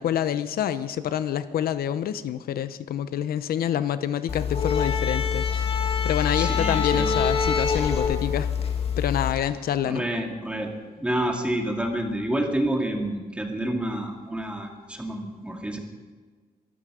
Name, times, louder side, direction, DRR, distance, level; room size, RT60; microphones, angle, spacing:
voice 1, 0.0-5.7 6.0-8.5 9.0-10.1, left 10 dB, 80° left, 13 dB, 0.7 m, -27 dB
sound 1, 4.3-9.3, left 6 dB, 40° left, 1.7 m, -25 dB
voice 2, 6.4-7.1 9.8-10.7 11.0-15.8, right 1 dB, 5° right, 2 dB, 2.1 m, -28 dB
23.0 x 12.5 x 5.0 m, 1.4 s
wide cardioid pair, 155°, 15 cm